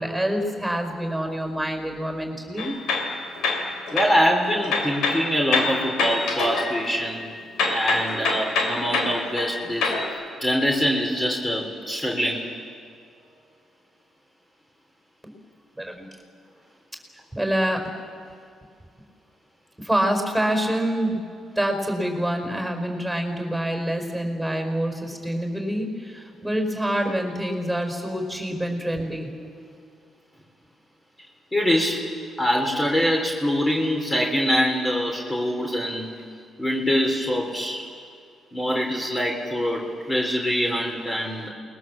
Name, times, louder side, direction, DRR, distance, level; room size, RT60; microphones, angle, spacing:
voice 1, 0.0-2.7 15.2-15.3 15.7-16.1 17.3-17.9 19.8-21.2 21.5-29.4, right 1 dB, 5° right, 4 dB, 4.9 m, -26 dB
sound 1, 2.6-4.2 4.6-7.3 7.6-10.0, left 3 dB, 90° left, 4.4 m, -26 dB
voice 2, 3.9-7.3 7.7-9.9 10.4-12.5 28.5-28.6 31.5-32.0 32.4-36.2 36.6-37.8 38.5-41.5, equal, 20° left, 0 dB, 3.6 m, -24 dB
29.0 x 21.0 x 7.5 m, 2.2 s
cardioid pair, 90°, 0 cm